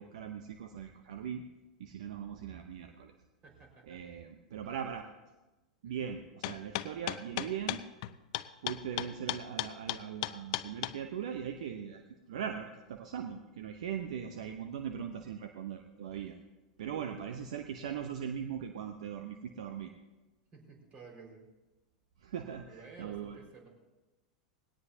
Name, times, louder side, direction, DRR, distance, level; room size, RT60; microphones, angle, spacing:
voice 1, 0.0-1.4 1.8-3.1 3.9-5.0 5.8-7.8 8.6-16.4 16.8-19.9 22.2-23.4, right 8 dB, 65° right, 7 dB, 0.9 m, -40 dB
voice 2, 3.4-4.0 4.7-4.9 5.8-6.1 16.9-17.2 20.5-21.5 22.7-23.7, right 4 dB, 35° right, 0 dB, 5.0 m, -53 dB
sound 1, 6.4-10.9, left 17 dB, 55° left, 0.6 m, -35 dB
19.5 x 17.5 x 2.8 m, 1.1 s
figure-of-eight pair, 90°, 4 cm